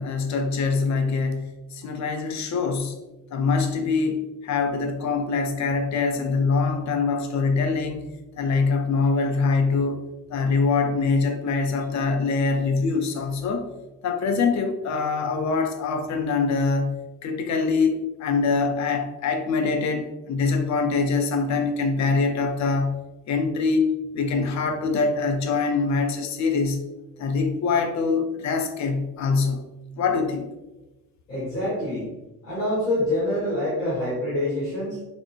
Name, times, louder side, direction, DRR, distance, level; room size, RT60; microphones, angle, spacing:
voice 1, 0.0-3.0 3.3-8.1 8.4-10.0 10.3-13.6 14.0-26.9 27.2-29.6 30.0-30.5, left 4 dB, 40° left, 6 dB, 0.5 m, -24 dB
voice 2, 31.3-32.2 32.4-35.1, left 1 dB, 90° left, -10 dB, 1.4 m, -26 dB
3.6 x 2.5 x 2.3 m, 1.0 s
figure-of-eight pair, 45°, 45 cm